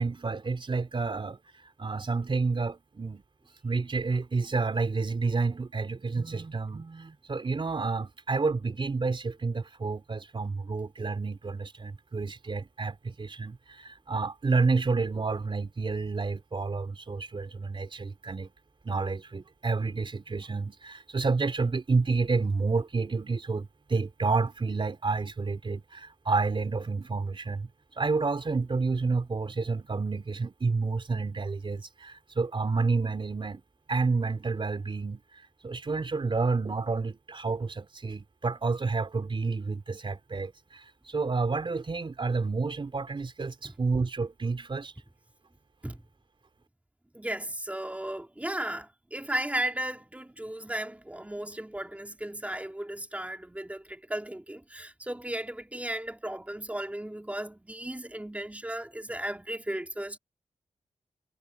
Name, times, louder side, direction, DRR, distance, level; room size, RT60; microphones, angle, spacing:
voice 1, 0.0-1.4 1.8-3.2 3.6-18.5 18.8-27.7 28.0-33.6 33.9-44.9, right 4 dB, 45° right, 4.0 m, -30 dB
voice 2, 47.1-60.2, right 1 dB, 10° right, 3.1 m, -35 dB
cardioid pair, 65°, 12 cm